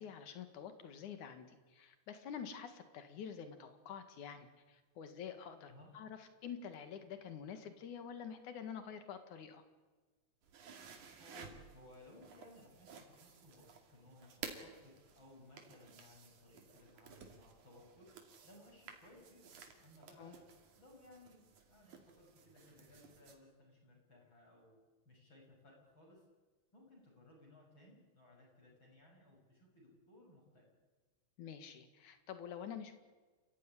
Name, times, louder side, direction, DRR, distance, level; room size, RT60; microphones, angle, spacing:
voice 1, 0.0-9.6 20.2-20.3 31.4-32.9, left 7 dB, 85° left, 9 dB, 3.4 m, -48 dB
sound 1, 10.4-23.3, right 6 dB, 85° right, 3.9 m, -55 dB
voice 2, 11.2-18.1 18.4-20.4 20.8-24.8 25.0-26.2 26.7-30.7, left 1 dB, 40° left, -2 dB, 7.7 m, -61 dB
28.5 x 15.5 x 10.0 m, 1.3 s
omnidirectional pair, 3.4 m